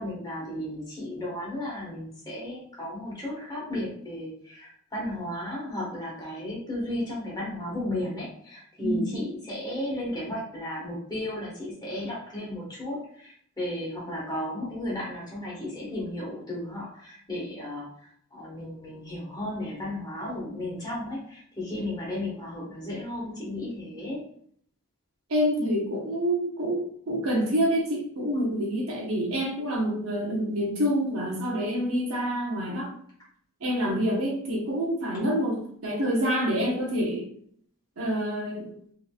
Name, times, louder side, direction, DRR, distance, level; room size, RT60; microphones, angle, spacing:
voice 1, 0.0-17.9 18.3-24.2, left 1 dB, 20° left, -5 dB, 1.4 m, -34 dB
voice 2, 8.8-9.1 25.3-32.9 33.6-37.3 38.0-38.7, equal, 70° right, -2 dB, 1.1 m, -27 dB
3.7 x 3.4 x 2.3 m, 0.62 s
head